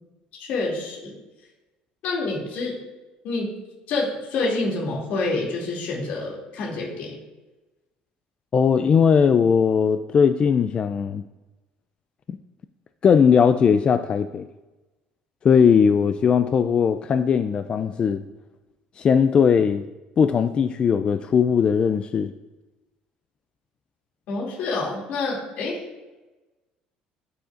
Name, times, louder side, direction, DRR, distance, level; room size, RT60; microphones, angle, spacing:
voice 1, 0.4-1.1 2.0-2.8 3.2-3.5 3.9-7.2 24.3-25.8, left 3 dB, 65° left, -3 dB, 2.7 m, -27 dB
voice 2, 8.5-11.2 13.0-14.5 15.4-18.2 19.0-19.8 20.2-22.3, left 6 dB, 35° left, 10 dB, 0.4 m, -19 dB
15.0 x 6.9 x 2.6 m, 1.1 s
cardioid pair, 115°, 3 cm